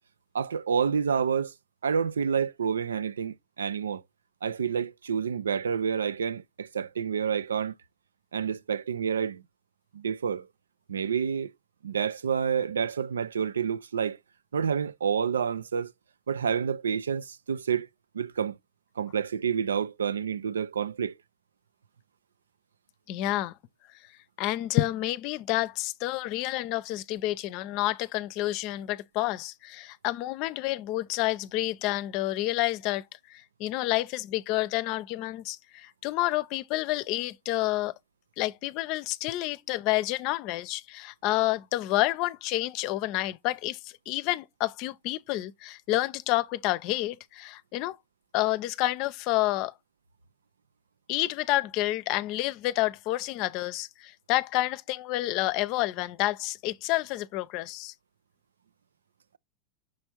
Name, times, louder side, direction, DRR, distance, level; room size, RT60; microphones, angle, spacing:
voice 1, 0.3-1.5 1.8-4.0 4.4-7.7 8.3-9.4 9.9-10.5 10.9-11.5 11.8-14.2 14.5-15.9 16.3-17.9 18.1-18.6 19.0-21.1, right 7 dB, 85° right, 0.4 m, -28 dB
voice 2, 23.1-23.5 24.4-37.9 38.4-48.0 48.3-49.7 51.1-57.9, left 16 dB, 55° left, 0.6 m, -29 dB
6.2 x 3.5 x 4.4 m
hypercardioid pair, 95°, 0 cm